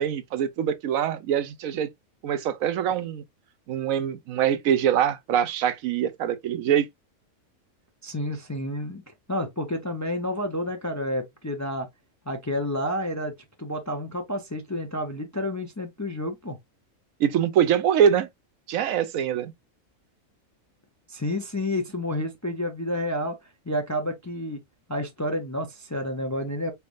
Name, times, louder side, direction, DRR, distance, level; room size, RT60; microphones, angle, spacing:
voice 1, 0.0-1.9 2.2-3.2 3.7-6.9 17.2-18.3 18.7-19.5, right 9 dB, 75° right, 1.0 m, -24 dB
voice 2, 8.0-9.0 9.3-11.9 12.3-13.3 13.6-16.6 21.1-23.4 23.6-24.6 24.9-26.7, left 1 dB, 20° left, 0.5 m, -30 dB
4.8 x 3.4 x 2.5 m
omnidirectional pair, 1.5 m